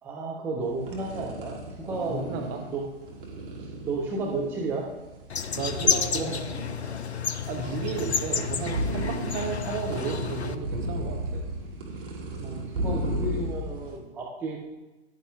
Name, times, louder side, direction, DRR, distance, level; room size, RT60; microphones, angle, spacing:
voice 1, 0.0-2.4 2.7-2.8 3.6-4.9 5.7-6.4 12.4-14.6, right 3 dB, 5° right, -1 dB, 0.5 m, -33 dB
sound 1, 0.6-14.0, right 1 dB, 55° right, 2.3 m, -35 dB
voice 2, 2.1-2.6 5.5-6.3 7.5-11.5, right 4 dB, 25° right, 2 dB, 1.2 m, -33 dB
sound 2, 5.3-10.6, left 7 dB, 75° left, 0.7 m, -30 dB
11.5 x 9.4 x 2.3 m, 1.1 s
figure-of-eight pair, 115°, 33 cm